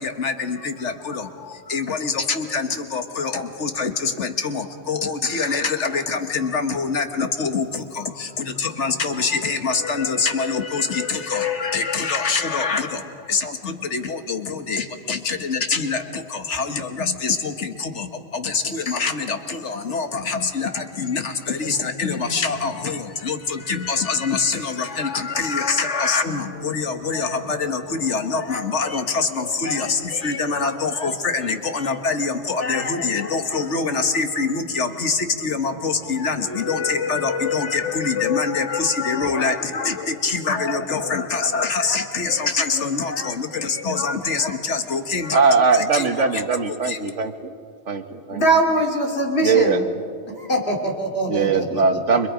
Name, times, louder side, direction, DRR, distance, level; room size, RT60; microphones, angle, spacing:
voice 1, 0.0-45.4 45.7-46.4 46.8-47.0, left 4 dB, 75° left, 7 dB, 1.7 m, -25 dB
voice 2, 45.3-47.5 47.9-48.4 49.4-49.8 51.3-52.3, right 4 dB, 85° right, 7 dB, 1.7 m, -20 dB
voice 3, 48.3-49.8 50.3-52.0, right 1 dB, 60° left, 1 dB, 2.9 m, -22 dB
30.0 x 25.5 x 5.1 m, 2.3 s
omnidirectional pair, 1.2 m